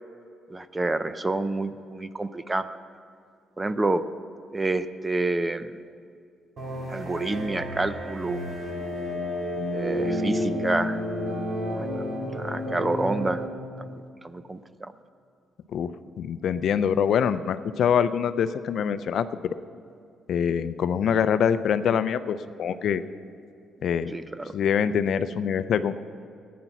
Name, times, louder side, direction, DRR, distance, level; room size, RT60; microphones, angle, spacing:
voice 1, 0.5-2.7 3.6-4.0 4.5-5.7 6.9-8.4 9.7-11.0 11.7-12.0 12.3-13.4 13.9-14.9 24.1-24.5, right 2 dB, 15° right, 13 dB, 0.5 m, -28 dB
sound 1, 6.6-13.5, left 1 dB, 50° right, 2.2 m, -30 dB
voice 2, 16.2-19.3 20.3-23.0 23.8-24.1 24.5-25.9, left 8 dB, 60° left, 12 dB, 0.5 m, -24 dB
15.0 x 9.4 x 5.9 m, 2.5 s
cardioid pair, 110°, 0 cm